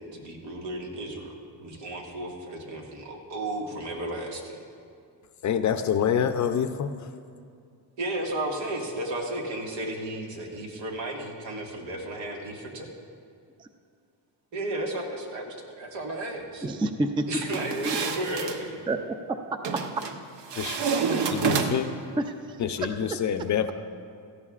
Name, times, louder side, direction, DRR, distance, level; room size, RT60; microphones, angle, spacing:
voice 1, 0.0-4.6 8.0-12.9 14.5-16.7 17.3-18.8, right 1 dB, 85° right, 0 dB, 1.9 m, -34 dB
voice 2, 5.4-7.1 20.6-21.9 22.6-23.7, left 8 dB, 40° left, 9 dB, 0.5 m, -27 dB
voice 3, 16.6-17.2 17.8-18.0 18.9-19.6 21.1-21.4 22.2-22.9, right 2 dB, 10° right, 7 dB, 0.3 m, -29 dB
sound 1, 17.4-18.6 19.6-20.2 20.5-22.0, right 5 dB, 70° right, 0.9 m, -28 dB
16.5 x 14.0 x 2.4 m, 2.3 s
cardioid pair, 140°, 43 cm